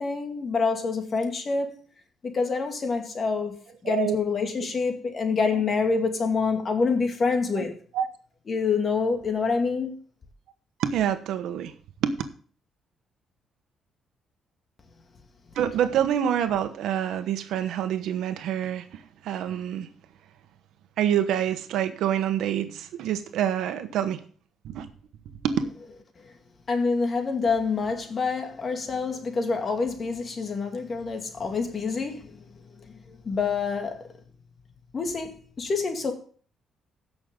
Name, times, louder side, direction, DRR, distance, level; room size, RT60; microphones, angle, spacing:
voice 1, 0.0-1.7 2.2-3.5 3.8-7.7 8.5-9.9 26.2-26.3 26.7-32.5 32.9-34.0 34.9-36.1, left 4 dB, 40° left, 2.2 m, -27 dB
voice 2, 3.8-4.2 7.9-8.1 10.8-11.7 12.0-12.1 15.5-19.9 21.0-24.2 24.6-24.9 25.4-25.6, right 10 dB, 85° right, 1.1 m, -26 dB
16.0 x 6.4 x 3.8 m
cardioid pair, 90°, 0 cm